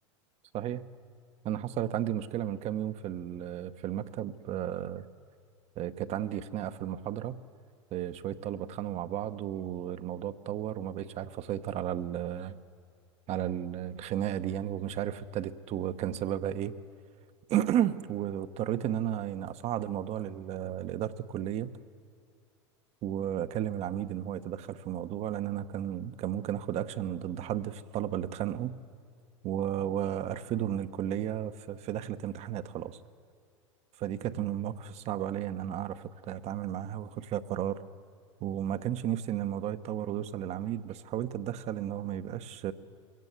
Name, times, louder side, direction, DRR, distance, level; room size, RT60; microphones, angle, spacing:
voice 1, 0.5-0.9 1.4-5.1 5.8-7.4 7.9-12.6 13.3-16.7 17.5-21.7 23.0-28.8 29.4-33.0 34.0-37.8 38.4-42.7, right 11 dB, 45° right, 12 dB, 1.0 m, -33 dB
22.5 x 17.0 x 8.1 m, 2.2 s
hypercardioid pair, 90°, 15 cm